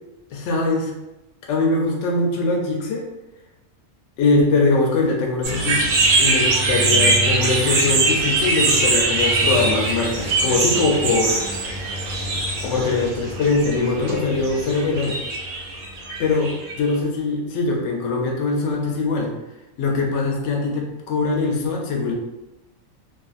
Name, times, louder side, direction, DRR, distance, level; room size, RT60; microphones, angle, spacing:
voice 1, 0.3-0.9 1.5-3.1 4.2-11.7 12.6-15.2 16.2-19.3 19.8-22.1, left 3 dB, 65° left, 0 dB, 0.8 m, -22 dB
sound 1, 5.4-16.9, right 2 dB, 85° right, 1.0 m, -22 dB
2.5 x 2.4 x 2.4 m, 0.99 s
omnidirectional pair, 1.4 m